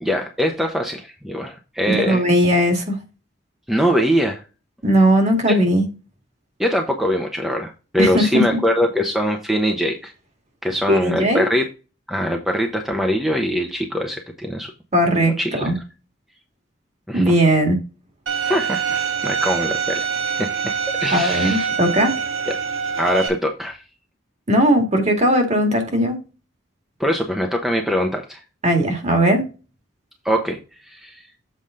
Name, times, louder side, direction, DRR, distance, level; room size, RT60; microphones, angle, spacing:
voice 1, 0.0-2.2 3.7-4.4 6.6-10.1 10.6-11.6 12.1-14.7 15.4-15.7 17.1-17.4 18.5-20.7 21.0-21.7 22.5-22.6 23.0-23.8 27.0-28.4 30.2-31.2, equal, ahead, 0.9 m, -22 dB
voice 2, 1.9-3.0 4.8-5.9 8.0-8.4 10.9-11.5 14.9-15.8 17.1-17.8 21.1-22.1 24.5-26.2 28.6-29.4, equal, 35° right, 2.0 m, -18 dB
Bowed string instrument, 18.3-23.3, right 6 dB, 85° right, 2.1 m, -24 dB
7.6 x 5.0 x 3.7 m
head